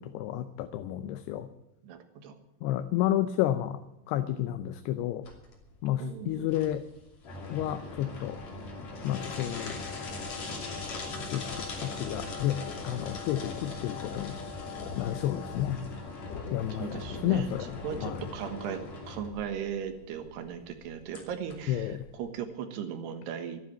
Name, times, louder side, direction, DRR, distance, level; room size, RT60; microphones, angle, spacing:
voice 1, 0.0-1.5 2.6-3.8 4.1-5.3 5.8-6.8 7.5-8.4 9.0-9.8 11.3-14.4 15.0-15.9 16.5-18.2 21.7-22.1, left 12 dB, 85° left, 9 dB, 2.8 m, -31 dB
voice 2, 1.8-2.4 6.0-6.5 16.7-17.5 17.8-18.8 19.1-23.6, right 8 dB, 90° right, 7 dB, 3.5 m, -37 dB
sound 1, 5.3-22.3, left 3 dB, 45° left, 3.8 m, -40 dB
sound 2, 10.7-18.4, left 4 dB, 65° left, 2.4 m, -46 dB
14.0 x 10.0 x 9.0 m, 0.88 s
omnidirectional pair, 4.7 m